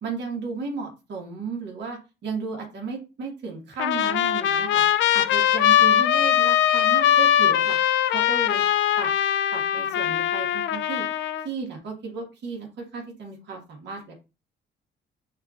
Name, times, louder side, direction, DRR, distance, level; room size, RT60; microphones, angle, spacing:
voice 1, 0.0-4.8 5.1-7.8 8.1-8.6 9.0-9.1 9.5-11.0 11.4-14.1, right 4 dB, 65° right, -1 dB, 1.4 m, -34 dB
Trumpet, 3.8-11.5, left 10 dB, 70° left, 0.4 m, -21 dB
6.3 x 2.5 x 2.4 m, 0.29 s
cardioid pair, 90°, 20 cm